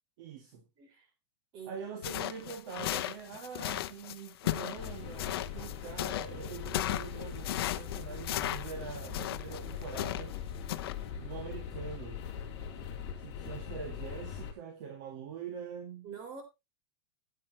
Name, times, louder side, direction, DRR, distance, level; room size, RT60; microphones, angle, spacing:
voice 1, 0.2-0.6 1.7-10.3 11.2-12.2 13.2-16.1, right 6 dB, 45° right, 1.9 m, -44 dB
voice 2, 0.8-1.1 1.5-2.0 16.0-16.4, right 6 dB, 30° right, 3.4 m, -46 dB
sound 1, 2.0-10.4 10.7-10.9, left 14 dB, 60° left, 0.8 m, -36 dB
sound 2, 4.7-14.5, left 8 dB, 35° left, 3.4 m, -41 dB
14.0 x 9.0 x 2.9 m
supercardioid pair, 180°, 14 cm